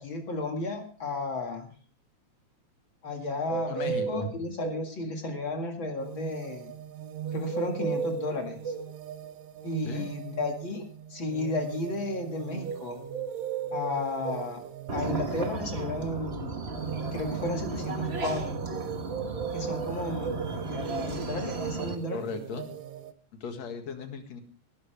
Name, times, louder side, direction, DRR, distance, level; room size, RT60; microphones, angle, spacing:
voice 1, 0.0-1.7 3.0-6.7 7.3-8.7 9.6-13.0 13.7-14.6 14.9-16.5 17.1-18.6 19.5-20.3 20.7-22.2, left 2 dB, 45° left, 3 dB, 2.6 m, -33 dB
sound 1, 3.4-4.9 7.5-8.9 13.1-14.5 19.1-20.4, right 5 dB, 90° right, 3.4 m, -34 dB
voice 2, 3.7-4.4 9.8-10.1 22.1-22.8 23.4-24.4, left 4 dB, 65° left, 5 dB, 3.1 m, -36 dB
sound 2, 6.0-23.1, right 9 dB, 75° right, 2.0 m, -41 dB
sound 3, 14.9-22.0, right 3 dB, 55° right, 0.6 m, -34 dB
19.0 x 12.0 x 3.4 m, 0.40 s
omnidirectional pair, 3.4 m